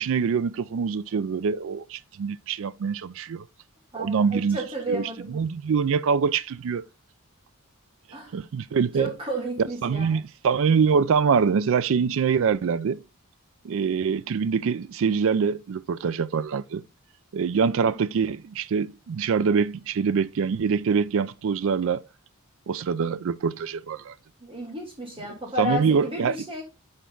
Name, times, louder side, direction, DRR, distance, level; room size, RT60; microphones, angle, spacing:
voice 1, 0.0-3.5 3.9-4.6 4.9-5.0 5.3-6.9 8.3-9.1 9.8-13.0 13.6-16.8 17.3-22.0 22.7-24.1 25.6-26.4, right 6 dB, 60° right, 0.4 m, -24 dB
voice 2, 3.9-5.4 8.1-8.4 9.0-10.2 24.4-26.6, equal, 25° right, 2.5 m, -32 dB
6.5 x 4.6 x 3.8 m
head